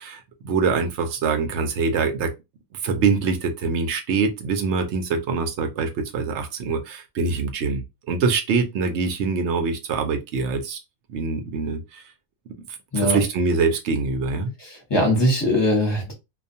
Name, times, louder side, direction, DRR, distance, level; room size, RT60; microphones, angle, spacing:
voice 1, 0.0-2.3 2.8-10.8 11.1-12.0 12.9-14.5, right 4 dB, 65° right, 0.7 m, -24 dB
voice 2, 14.6-16.1, left 1 dB, 20° left, 0.8 m, -21 dB
2.4 x 2.2 x 2.6 m
omnidirectional pair, 1.6 m